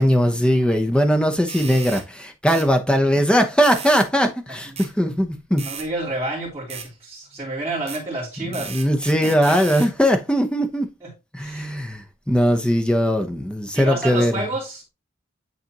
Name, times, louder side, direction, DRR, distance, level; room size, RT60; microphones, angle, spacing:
voice 1, 0.0-5.6 8.7-10.9 11.3-14.5, equal, 5° left, 0.7 m, -20 dB
sound 1, 1.5-2.0 2.5-2.7 3.6-4.1 4.8-4.9 5.6-5.9 6.7-6.9 7.9-8.0 8.5-9.9, right 7 dB, 30° right, 1.1 m, -35 dB
voice 2, 5.6-8.8 9.2-9.6 11.0-11.1 11.4-11.7 13.7-14.9, right 2 dB, 10° right, 3.1 m, -30 dB
9.3 x 4.1 x 2.9 m
head